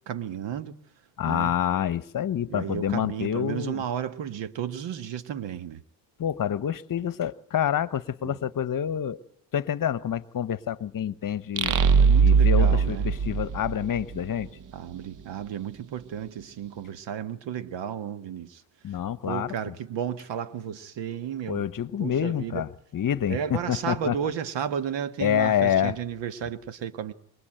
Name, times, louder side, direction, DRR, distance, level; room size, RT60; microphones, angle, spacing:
voice 1, 0.1-0.8 1.3-1.5 2.5-5.8 8.2-8.4 11.6-13.1 14.7-18.6 19.3-21.6 22.0-22.7 23.3-27.1, right 9 dB, 70° right, 1.7 m, -33 dB
voice 2, 1.2-3.8 6.2-9.2 9.5-11.7 12.2-14.5 18.8-19.7 21.5-24.2 25.2-25.9, left 9 dB, 45° left, 1.1 m, -27 dB
sound 1, 11.6-14.2, right 6 dB, 40° right, 1.0 m, -20 dB
27.0 x 22.5 x 9.1 m
cardioid pair, 100°, 45 cm